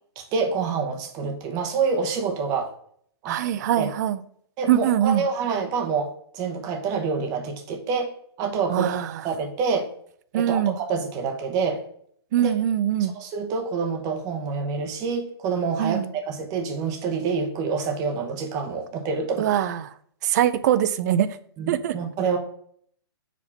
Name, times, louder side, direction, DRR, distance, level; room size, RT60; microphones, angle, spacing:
voice 1, 0.2-2.7 3.2-3.4 3.8-3.9 4.6-8.1 8.4-8.9 9.2-9.9 10.3-11.8 12.4-12.5 13.1-19.5 21.6-22.4, right 5 dB, 25° right, 0.9 m, -27 dB
voice 2, 3.3-4.2 4.7-5.2 8.7-9.1 10.3-10.7 12.3-13.1 15.8-16.1 19.4-19.8 20.2-21.3 21.7-22.0, right 10 dB, 40° right, 0.4 m, -22 dB
4.9 x 3.5 x 5.6 m
hypercardioid pair, 145°, 14 cm